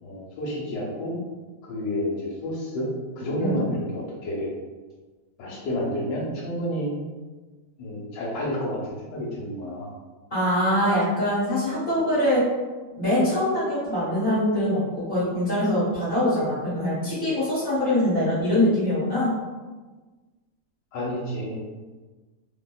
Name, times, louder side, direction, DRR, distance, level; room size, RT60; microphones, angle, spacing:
voice 1, 0.0-1.1 1.7-2.9 3.2-4.5 5.4-6.9 7.8-9.9 20.9-21.6, equal, 80° left, -6 dB, 1.3 m, -30 dB
voice 2, 10.3-12.4 12.9-19.3, left 1 dB, 35° left, -9 dB, 1.1 m, -23 dB
2.7 x 2.7 x 2.2 m, 1.3 s
omnidirectional pair, 1.9 m